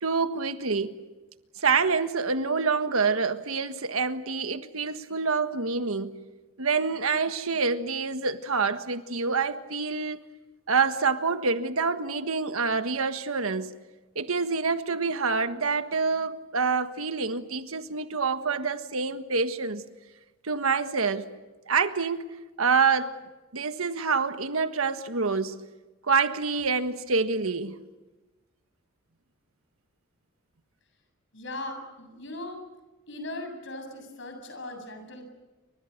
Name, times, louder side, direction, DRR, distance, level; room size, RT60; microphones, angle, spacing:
voice 1, 0.0-1.0 1.6-6.1 6.6-10.2 10.7-13.7 14.1-19.8 20.4-21.3 21.7-22.3 22.6-23.2 23.5-25.6 26.0-27.8, right 4 dB, 90° right, 1.5 m, -27 dB
voice 2, 31.3-32.6 33.1-35.3, left 1 dB, 60° left, 7.5 m, -38 dB
29.5 x 25.5 x 6.7 m
head